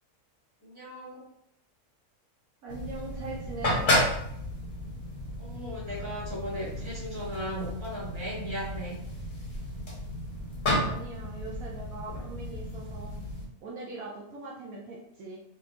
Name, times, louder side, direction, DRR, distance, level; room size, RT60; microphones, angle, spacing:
voice 1, 0.6-1.2 5.4-9.0, equal, 20° right, -7 dB, 1.5 m, -37 dB
voice 2, 2.6-4.0 10.8-13.2 13.6-15.4, right 3 dB, 70° right, -4 dB, 1.1 m, -41 dB
sound 1, 2.7-13.4, left 1 dB, 35° left, 1.3 m, -32 dB
3.6 x 3.5 x 2.9 m, 0.75 s
omnidirectional pair, 1.6 m